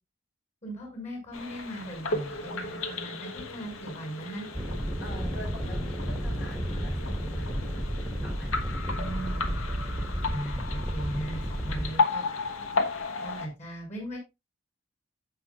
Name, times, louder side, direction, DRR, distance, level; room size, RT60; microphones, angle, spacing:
voice 1, 0.6-4.5 8.9-9.6 10.3-12.2 13.2-14.2, right 1 dB, 35° left, 2 dB, 5.9 m, -38 dB
sound 1, 1.3-13.5, left 4 dB, 85° left, 1.3 m, -34 dB
sound 2, 4.5-11.9, equal, ahead, 1.5 m, -32 dB
voice 2, 5.0-7.5 8.2-8.7, left 1 dB, 55° left, -2 dB, 6.5 m, -46 dB
15.0 x 6.0 x 2.4 m, 0.23 s
head